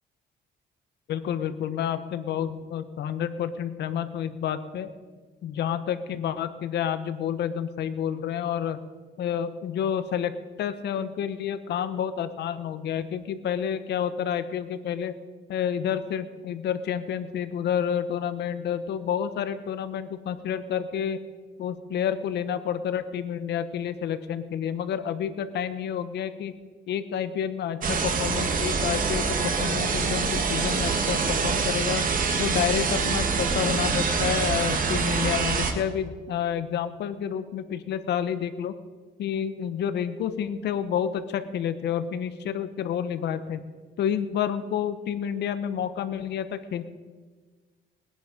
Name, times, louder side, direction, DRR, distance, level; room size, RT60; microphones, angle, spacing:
voice 1, 1.1-4.9 5.4-8.8 9.2-10.3 10.6-15.1 15.5-21.2 21.6-26.5 26.9-32.0 32.4-38.7 39.2-43.6 44.0-46.8, left 8 dB, 75° left, 11 dB, 1.1 m, -29 dB
sound 1, 27.8-35.7, right 5 dB, 50° right, 1.9 m, -25 dB
21.0 x 10.0 x 5.1 m, 1.4 s
cardioid pair, 105°, 18 cm